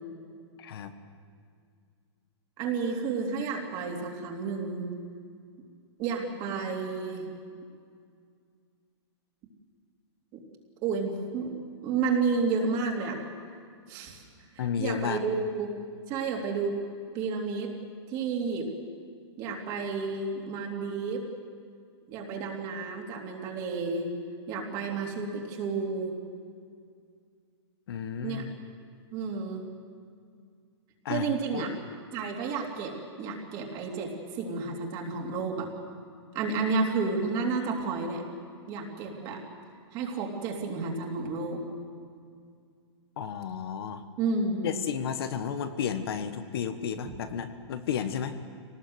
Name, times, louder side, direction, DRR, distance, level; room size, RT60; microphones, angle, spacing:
voice 1, 0.6-0.9 14.6-15.2 27.9-28.5 31.0-31.6 43.2-44.0 44.6-48.4, left 8 dB, 55° left, 8 dB, 1.4 m, -32 dB
voice 2, 2.6-4.9 6.0-7.3 10.3-10.4 10.8-11.5 11.8-13.2 13.9-14.2 14.8-15.7 16.1-16.8 17.1-17.7 18.1-18.7 19.4-21.2 22.1-24.1 24.5-26.2 28.2-28.5 29.1-29.6 31.1-31.7 32.1-35.7 36.3-38.2 38.7-39.4 39.9-41.6 44.2-44.7, right 4 dB, 30° right, 1 dB, 3.1 m, -31 dB
23.5 x 19.0 x 8.0 m, 2.2 s
hypercardioid pair, 165°, 15 cm